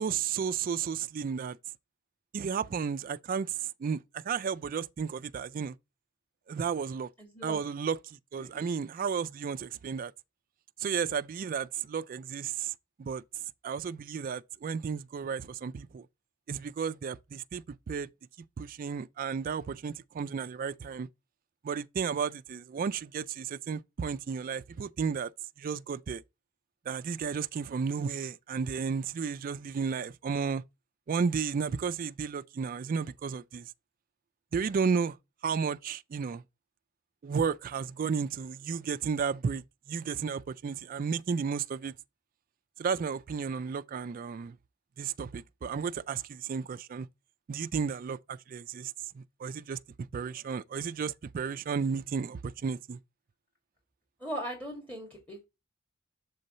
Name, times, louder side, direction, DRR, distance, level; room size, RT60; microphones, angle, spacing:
voice 1, 0.0-1.6 2.3-5.7 6.5-7.1 7.4-10.1 10.8-12.7 13.0-13.2 13.6-16.1 16.5-18.1 18.6-21.1 21.6-25.3 25.6-26.2 26.9-30.6 31.1-33.7 34.5-35.2 35.4-36.4 37.2-41.9 42.8-44.6 45.0-47.1 47.5-49.8 50.1-53.0, right 6 dB, 45° right, 0.3 m, -33 dB
voice 2, 7.2-7.6 8.4-8.7 54.2-55.5, equal, 10° left, 1.6 m, -39 dB
6.6 x 3.9 x 4.0 m
head